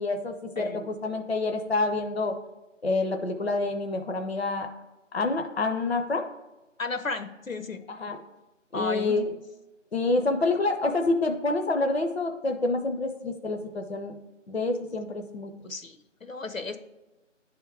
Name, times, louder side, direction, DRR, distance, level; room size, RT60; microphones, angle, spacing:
voice 1, 0.0-2.3 2.8-4.7 5.1-6.3 7.9-8.2 8.7-9.2 9.9-14.2 14.5-15.5, left 3 dB, 55° left, 5 dB, 0.6 m, -27 dB
voice 2, 0.6-0.9 6.8-7.8 8.7-9.2 15.7-16.8, left 3 dB, 85° left, 8 dB, 0.8 m, -34 dB
10.0 x 3.5 x 4.7 m, 1.0 s
figure-of-eight pair, 175°, 39 cm